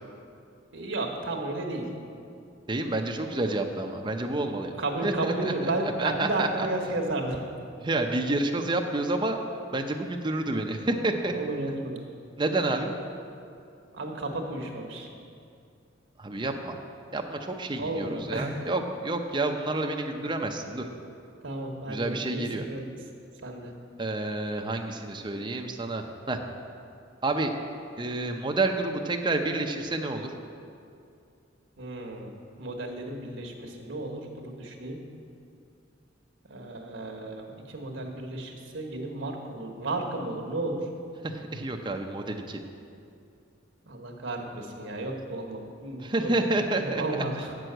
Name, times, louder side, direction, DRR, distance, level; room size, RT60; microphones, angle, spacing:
voice 1, 0.7-1.9 4.5-7.4 11.3-12.0 13.9-15.1 17.8-18.7 21.4-22.9 23.4-23.7 31.8-32.3 32.6-35.0 36.5-40.9 43.8-46.3 46.8-47.5, right 2 dB, 75° right, 2 dB, 1.2 m, -33 dB
voice 2, 2.7-4.7 5.0-5.7 6.0-6.7 7.8-9.4 9.7-11.3 12.4-12.9 16.2-16.8 17.1-20.9 21.9-22.6 24.0-26.4 27.2-27.5 28.0-30.3 41.2-42.6 46.0-47.0, right 2 dB, 25° right, 3 dB, 0.6 m, -29 dB
7.4 x 6.2 x 7.9 m, 2.5 s
head